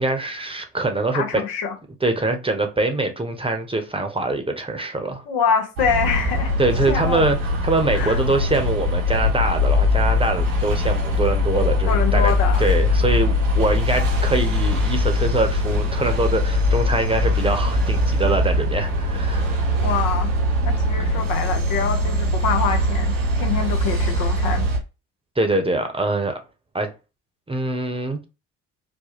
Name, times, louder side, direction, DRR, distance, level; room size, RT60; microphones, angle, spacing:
voice 1, 0.0-1.4 2.0-5.2 6.6-7.4 7.6-12.3 12.6-19.6 25.4-26.4 26.7-26.9 27.5-28.2, right 2 dB, 15° right, 0.8 m, -23 dB
voice 2, 1.1-1.7 5.3-6.5 6.9-7.2 7.9-8.2 11.9-12.6 19.8-20.3 20.7-24.7, left 6 dB, 70° left, 0.8 m, -25 dB
sound 1, 5.8-24.8, left 1 dB, 85° right, 1.2 m, -21 dB
4.1 x 2.2 x 3.0 m
hypercardioid pair, 55°, 38 cm